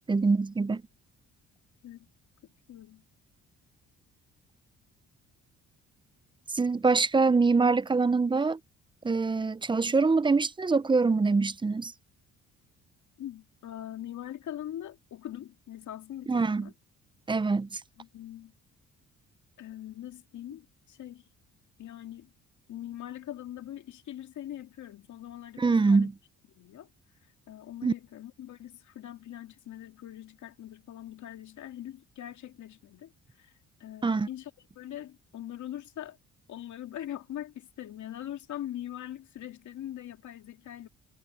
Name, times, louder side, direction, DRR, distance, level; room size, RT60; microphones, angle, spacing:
voice 1, 0.1-0.8 6.5-8.6 9.0-11.9 16.3-16.7 17.3-17.8 25.6-26.1 27.8-27.9 34.0-34.3, right 4 dB, 15° right, 0.5 m, -24 dB
voice 2, 2.7-3.0 13.2-16.7 18.0-18.5 19.6-21.3 21.8-22.3 22.7-26.1 26.6-26.9 27.5-33.5 33.8-34.5 34.8-36.2 36.5-40.9, left 12 dB, 70° left, 2.5 m, -42 dB
cardioid pair, 90°, 30 cm